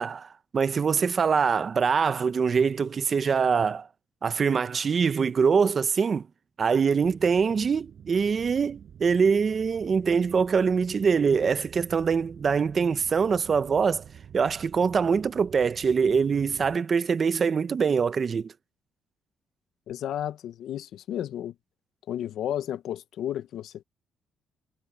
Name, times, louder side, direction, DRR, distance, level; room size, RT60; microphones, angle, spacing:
voice 1, 0.0-3.9 4.2-6.3 6.6-14.0 14.3-18.5, right 6 dB, 45° right, 0.8 m, -24 dB
sound 1, 7.0-16.8, right 8 dB, 60° right, 7.3 m, -48 dB
voice 2, 19.9-21.5 22.1-23.8, left 11 dB, 75° left, 0.9 m, -32 dB
cardioid pair, 90°, 0 cm